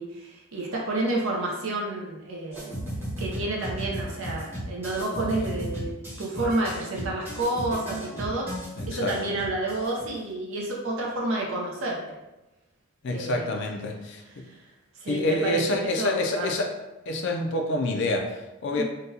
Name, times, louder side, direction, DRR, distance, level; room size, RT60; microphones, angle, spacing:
voice 1, 0.0-2.7 3.2-8.5 8.9-12.2 13.1-13.5 14.4-14.6 15.0-16.5 18.7-18.8, right 2 dB, 65° right, -2 dB, 0.7 m, -30 dB
sound 1, 2.5-10.2, equal, 10° right, 1.0 m, -35 dB
voice 2, 8.8-9.2 13.0-14.4 15.1-16.7 17.1-18.8, left 2 dB, 55° left, 2 dB, 0.4 m, -27 dB
3.7 x 2.2 x 2.7 m, 1.0 s
head